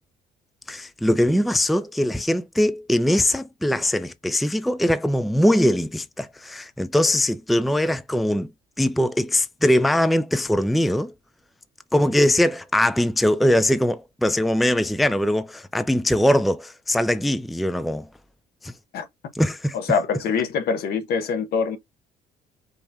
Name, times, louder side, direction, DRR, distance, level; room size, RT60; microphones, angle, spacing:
voice 1, 0.7-8.5 8.8-11.1 11.9-18.1 18.6-18.7 19.4-19.7, left 1 dB, ahead, 0.4 m, -21 dB
voice 2, 19.7-21.8, left 5 dB, 65° left, 1.1 m, -24 dB
5.2 x 2.9 x 3.5 m
cardioid pair, 110°, 17 cm